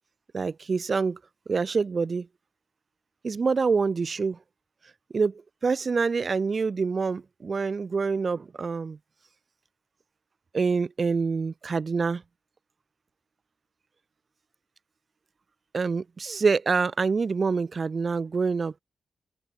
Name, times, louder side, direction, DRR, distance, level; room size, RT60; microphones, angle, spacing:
voice 1, 0.3-1.2 1.5-2.3 3.2-4.4 5.1-9.0 10.5-12.2 15.7-18.8, right 4 dB, 45° right, 0.5 m, -26 dB
open air
cardioid pair, 100°, 0 cm